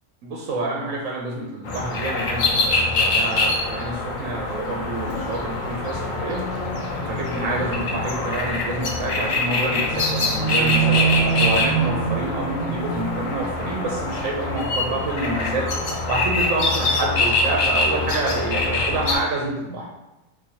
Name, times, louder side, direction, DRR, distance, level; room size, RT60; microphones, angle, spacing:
voice 1, 0.2-6.5 7.1-11.0 11.4-15.7 16.1-19.9, right 2 dB, 70° right, -1 dB, 0.9 m, -28 dB
sound 1, 1.6-19.1, left 1 dB, 60° left, 0.5 m, -23 dB
3.8 x 2.6 x 2.8 m, 1.0 s
omnidirectional pair, 1.5 m